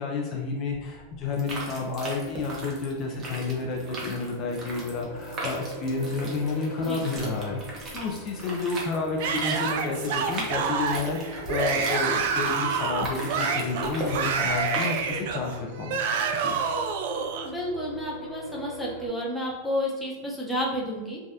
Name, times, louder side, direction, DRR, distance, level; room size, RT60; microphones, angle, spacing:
voice 1, 0.0-7.6 7.9-16.0 16.4-16.6, left 4 dB, 40° left, 0 dB, 0.5 m, -30 dB
sound 1, 0.7-19.1, right 1 dB, 25° left, 1.0 m, -43 dB
sound 2, 1.3-15.4, right 2 dB, 30° right, 0.9 m, -38 dB
Yell / Screaming, 9.2-17.5, right 6 dB, 65° right, 0.4 m, -28 dB
voice 2, 17.4-21.2, equal, 5° left, -4 dB, 0.8 m, -31 dB
3.3 x 2.2 x 2.7 m, 1.2 s
hypercardioid pair, 120°, 0 cm